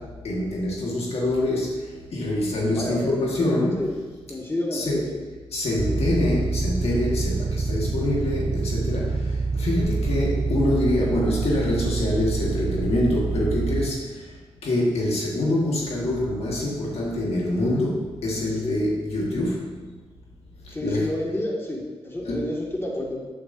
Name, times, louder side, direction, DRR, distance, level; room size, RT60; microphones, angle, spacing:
voice 1, 0.0-3.9 4.7-5.0 5.5-14.3 14.6-19.8 20.6-21.1 22.2-22.5, left 1 dB, 75° left, -3 dB, 1.6 m, -25 dB
voice 2, 2.7-3.2 3.8-3.9 4.3-5.2 5.9-6.1 18.6-18.8 20.7-23.2, left 1 dB, 25° left, -2 dB, 2.0 m, -29 dB
sound 1, 5.8-13.8, right 4 dB, 50° right, 0.8 m, -26 dB
8.7 x 8.1 x 2.6 m, 1.3 s
cardioid pair, 60°, 10 cm